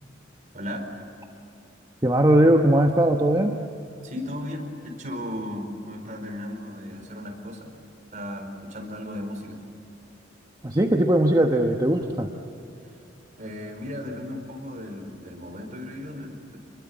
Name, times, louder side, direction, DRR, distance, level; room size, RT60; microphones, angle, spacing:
voice 1, 0.5-0.9 4.0-7.7 8.1-9.6 12.8-13.0 13.4-16.6, left 1 dB, 40° right, 3 dB, 4.9 m, -35 dB
voice 2, 2.0-3.6 10.6-12.3, right 1 dB, 20° right, 3 dB, 1.1 m, -19 dB
28.0 x 22.0 x 8.6 m, 2.7 s
head